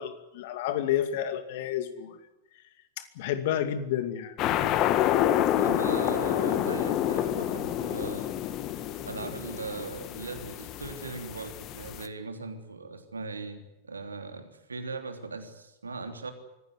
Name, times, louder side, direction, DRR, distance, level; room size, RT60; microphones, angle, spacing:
voice 1, 0.0-2.2 3.0-4.3, left 10 dB, 55° left, 10 dB, 2.4 m, -30 dB
sound 1, 4.4-12.1, left 11 dB, 35° left, 1.6 m, -28 dB
voice 2, 5.6-8.3 9.0-16.3, right 3 dB, 80° right, 6 dB, 3.3 m, -39 dB
24.5 x 16.5 x 9.3 m, 0.94 s
figure-of-eight pair, 95°, 0 cm